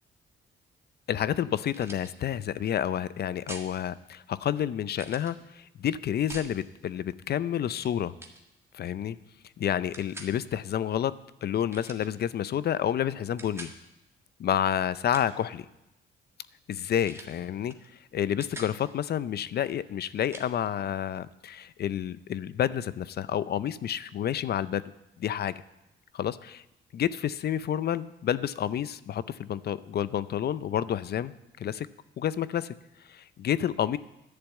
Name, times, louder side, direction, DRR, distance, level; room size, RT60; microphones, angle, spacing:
voice 1, 1.1-8.1 8.7-9.2 9.6-11.1 11.4-13.7 14.4-15.7 16.7-17.7 18.1-24.8 25.2-25.5 26.1-26.6 26.9-31.9 32.2-32.8 33.1-34.0, left 10 dB, 55° left, 17 dB, 0.5 m, -29 dB
sound 1, 1.7-2.1 3.5-3.7 4.9-5.3 6.3-6.5 7.6-7.9 8.2-8.4 9.9-10.3 11.7-12.1 13.4-13.8 14.9-15.4 17.0-17.4 17.7-17.9 18.1-18.8 20.3-20.5, right 2 dB, 15° right, 1.7 m, -44 dB
11.5 x 6.9 x 8.3 m, 0.92 s
cardioid pair, 90°, 20 cm